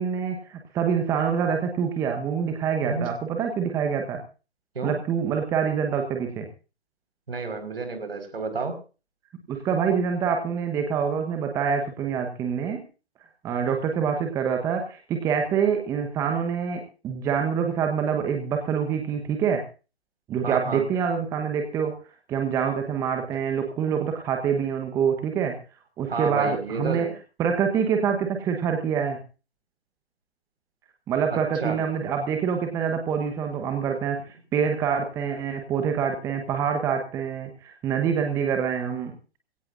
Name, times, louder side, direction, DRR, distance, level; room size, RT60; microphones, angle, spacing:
voice 1, 0.0-4.2 4.8-6.5 9.5-12.8 13.4-19.6 20.3-21.9 22.3-25.6 26.0-27.1 27.4-29.2 31.1-39.1, right 7 dB, 10° right, 4 dB, 1.1 m, -26 dB
voice 2, 7.3-8.8 20.4-20.8 26.1-27.1 31.3-31.8, right 4 dB, 60° right, 7 dB, 5.0 m, -30 dB
22.0 x 17.0 x 2.6 m, 0.34 s
figure-of-eight pair, 140°, 32 cm